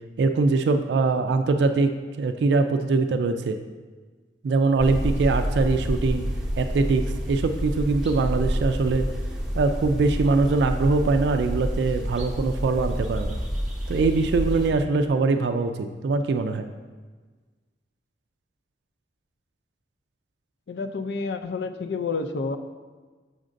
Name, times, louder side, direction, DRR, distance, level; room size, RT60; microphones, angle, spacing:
voice 1, 0.2-3.6 4.4-6.3 6.6-9.1 9.5-13.4 13.9-16.7, right 3 dB, 75° right, 7 dB, 0.3 m, -22 dB
sound 1, 4.8-14.7, equal, 5° right, 0.6 m, -28 dB
voice 2, 20.7-22.6, left 4 dB, 70° left, 8 dB, 0.4 m, -29 dB
6.3 x 6.3 x 2.5 m, 1.4 s
head